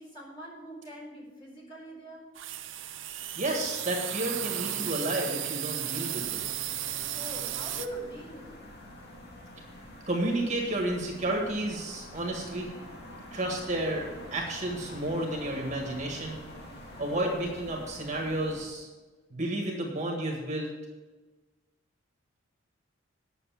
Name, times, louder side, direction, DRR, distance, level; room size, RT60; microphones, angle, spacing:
voice 1, 0.0-2.3 7.1-8.6, right 1 dB, 25° left, -4 dB, 4.2 m, -43 dB
sound 1, 2.4-7.9, right 12 dB, 70° right, 0.7 m, -34 dB
voice 2, 3.4-6.4 10.1-12.7 13.3-16.4 17.0-18.9 19.3-20.7, right 1 dB, 35° right, 0 dB, 1.6 m, -31 dB
sound 2, 6.1-18.6, left 1 dB, 55° left, 1.9 m, -46 dB
9.5 x 6.7 x 7.2 m, 1.2 s
head